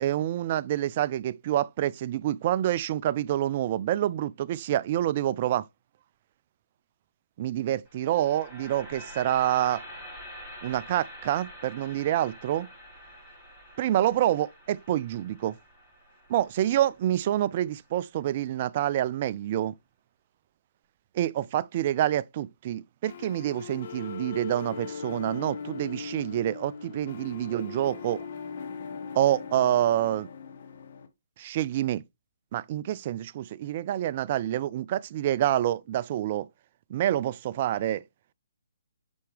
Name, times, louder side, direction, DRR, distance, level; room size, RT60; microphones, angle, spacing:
voice 1, 0.0-5.7 7.4-9.8 10.6-12.7 13.8-15.5 16.3-19.7 21.1-28.3 29.1-30.3 31.4-32.0 32.5-36.5 36.9-38.0, right 12 dB, 40° right, 0.3 m, -27 dB
sound 1, 7.9-18.0, equal, 5° left, 3.0 m, -47 dB
sound 2, 23.1-31.1, left 6 dB, 50° left, 1.4 m, -40 dB
8.3 x 4.4 x 3.3 m
hypercardioid pair, 145°, 0 cm